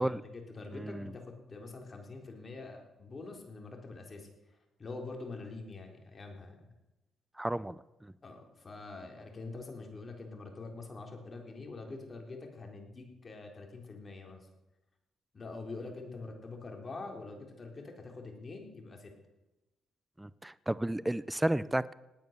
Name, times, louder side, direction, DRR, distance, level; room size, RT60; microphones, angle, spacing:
voice 1, 0.0-4.3 4.8-6.7 8.2-14.5 15.3-19.1, left 3 dB, 35° left, 3 dB, 4.0 m, -45 dB
voice 2, 0.7-1.1 7.4-8.1 20.2-21.9, right 1 dB, 10° right, 17 dB, 0.5 m, -33 dB
19.0 x 9.3 x 6.8 m, 1.0 s
cardioid pair, 90°, 0 cm